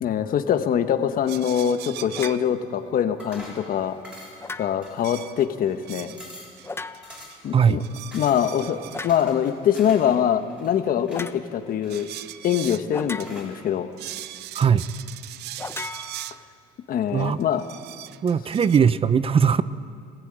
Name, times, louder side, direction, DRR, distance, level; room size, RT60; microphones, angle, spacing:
voice 1, 0.0-4.0 4.6-6.1 7.4-7.8 8.1-12.1 12.4-13.9 16.9-17.6, left 9 dB, 55° left, 8 dB, 1.3 m, -23 dB
sound 1, 1.3-2.5 5.0-6.2 6.6-7.4 7.7-9.1 11.9-12.9 13.2-13.3 13.6-13.7 14.0-16.4 17.2-18.8, right 14 dB, 75° right, 0.6 m, -39 dB
sound 2, 2.2-2.5 4.4-5.0 6.6-7.3 8.9-9.3 11.1-11.4 12.9-13.7 15.6-16.7, left 3 dB, 15° left, 0.7 m, -37 dB
sound 3, 3.2-3.7 4.0-4.5 4.8-5.4 5.8-5.9 6.1-6.6 7.0-7.5 8.1-8.5 9.1-10.2 10.4-11.3 11.8-12.5 13.2-13.5, left 1 dB, 5° right, 6.8 m, -44 dB
voice 2, 18.2-19.6, right 7 dB, 35° right, 16 dB, 0.6 m, -19 dB
23.0 x 15.5 x 9.0 m, 2.3 s
cardioid pair, 110°, 17 cm